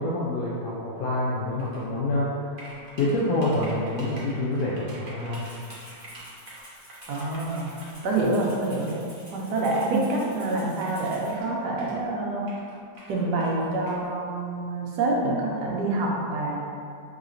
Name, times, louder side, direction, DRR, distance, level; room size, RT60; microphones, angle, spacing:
voice 1, 0.0-2.6 3.0-5.5, left 1 dB, 70° left, -7 dB, 0.9 m, -27 dB
sound 1, 1.6-1.9 2.6-8.1 8.9-9.0 9.9-10.0 10.2-10.3 10.8-12.1 12.5-14.1, right 1 dB, 50° right, 0.6 m, -46 dB
Rattle (instrument), 5.3-11.3, equal, 15° left, 0.8 m, -50 dB
voice 2, 7.1-7.7 8.0-8.9 9.3-12.4 13.1-16.6, right 2 dB, 75° right, -3 dB, 1.2 m, -26 dB
4.8 x 2.9 x 2.5 m, 2.3 s
omnidirectional pair, 1.9 m